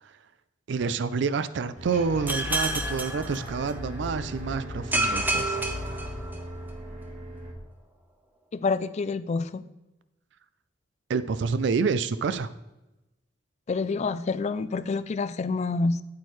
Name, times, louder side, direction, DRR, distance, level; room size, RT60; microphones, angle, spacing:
voice 1, 0.7-5.6 11.1-12.5, right 5 dB, 65° right, 15 dB, 0.4 m, -28 dB
sound 1, 1.8-7.5, equal, 40° right, 1.5 m, -37 dB
sound 2, 2.3-4.0 4.9-6.7, right 1 dB, 10° right, 0.9 m, -29 dB
voice 2, 8.5-9.6 13.7-16.0, left 4 dB, 35° left, 13 dB, 0.3 m, -27 dB
8.4 x 8.4 x 3.1 m, 1.0 s
head